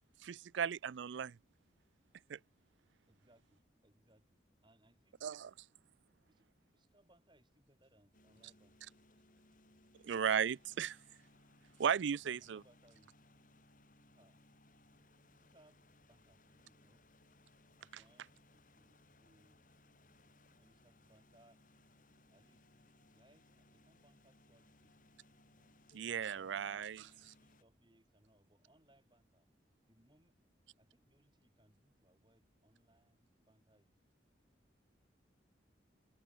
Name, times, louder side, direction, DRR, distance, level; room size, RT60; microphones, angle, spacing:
voice 1, 0.2-1.4 2.3-2.4 5.2-5.7 10.0-11.0 11.8-12.6 17.9-18.0 25.9-27.0, right 7 dB, 80° right, 0.4 m, -36 dB
voice 2, 3.1-5.2 6.2-8.9 12.4-13.4 14.1-14.4 15.3-17.0 17.8-19.6 20.6-21.6 22.3-22.7 23.1-24.9 25.5-25.7 26.2-26.9 27.2-29.5 29.9-30.3 30.8-33.9, right 1 dB, 25° right, 6.7 m, -70 dB
sound 1, 8.1-27.6, left 2 dB, 45° left, 7.3 m, -67 dB
head